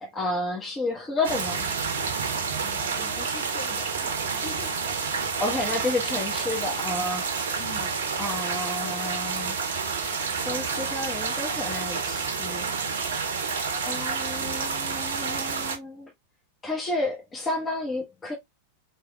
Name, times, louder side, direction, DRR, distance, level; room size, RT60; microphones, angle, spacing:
voice 1, 0.0-1.7 5.4-7.2 8.2-9.5 10.4-12.7 13.8-16.1 16.6-18.3, left 2 dB, 20° left, 1.1 m, -31 dB
sound 1, 1.2-15.8, right 5 dB, 65° right, 0.7 m, -29 dB
voice 2, 2.6-4.2 4.4-4.8 7.6-8.0, left 4 dB, 40° left, 1.6 m, -42 dB
4.1 x 3.4 x 2.2 m
figure-of-eight pair, 90°, 0 cm